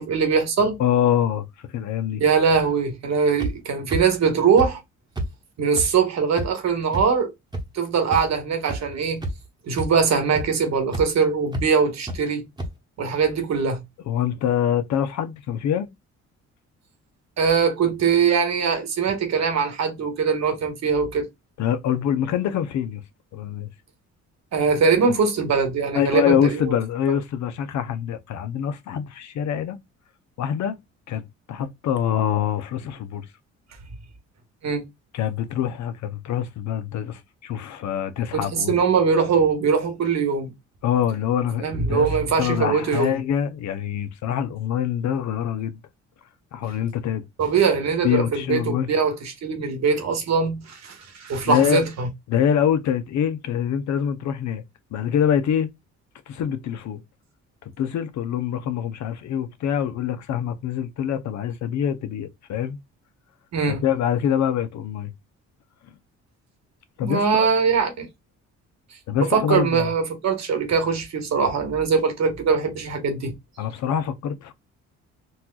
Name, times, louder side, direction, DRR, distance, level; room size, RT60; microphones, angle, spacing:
voice 1, 0.0-0.8 2.2-4.8 5.6-7.3 7.7-9.2 9.7-12.4 13.0-13.8 17.4-21.3 24.5-26.6 34.6-34.8 38.3-40.5 41.6-43.2 47.4-52.1 63.5-63.8 67.0-68.1 69.3-73.3, right 5 dB, 60° right, 1.3 m, -22 dB
voice 2, 0.8-1.5 1.7-2.2 14.1-15.9 21.6-23.0 23.3-23.7 25.9-29.8 30.4-30.8 31.1-33.3 35.1-38.7 40.8-45.8 46.5-47.2 48.0-48.9 51.5-51.8 52.3-54.6 54.9-55.7 56.3-57.0 57.8-62.8 63.7-65.1 67.0-67.5 69.1-69.9 73.6-74.5, left 9 dB, 70° left, 0.7 m, -25 dB
sound 1, 3.4-3.5 3.9-4.0 4.6-4.7 5.1-5.3 5.8-5.9 6.4-6.5 6.9-7.0 7.5-7.6 8.1-8.2 8.7-8.8 9.2-9.5 9.8-9.9 10.3-10.4 10.9-11.0 11.5-11.6 12.1-12.2 12.6-12.7, right 1 dB, 15° right, 1.0 m, -27 dB
4.2 x 2.3 x 2.3 m
cardioid pair, 90°, 30 cm